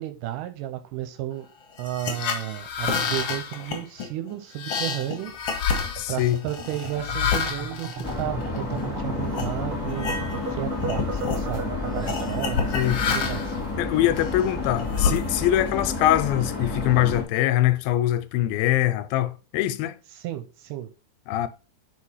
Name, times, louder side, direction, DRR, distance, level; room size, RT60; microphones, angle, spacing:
voice 1, 0.0-1.5 1.8-5.3 6.1-10.2 10.5-13.6 20.2-20.9, right 13 dB, 75° right, 2.1 m, -33 dB
sound 1, 1.8-8.8 9.3-9.5 9.9-10.5 10.8-11.5 12.1-13.6 14.2-15.7, left 6 dB, 65° left, 1.5 m, -29 dB
sound 2, 5.7-12.3, right 2 dB, 60° right, 1.6 m, -36 dB
voice 2, 5.9-6.4 12.7-13.0 13.8-20.0 21.3-21.5, left 13 dB, 90° left, 2.4 m, -23 dB
sound 3, 8.0-17.2, left 3 dB, 5° left, 1.4 m, -30 dB
4.8 x 4.5 x 5.6 m
omnidirectional pair, 4.1 m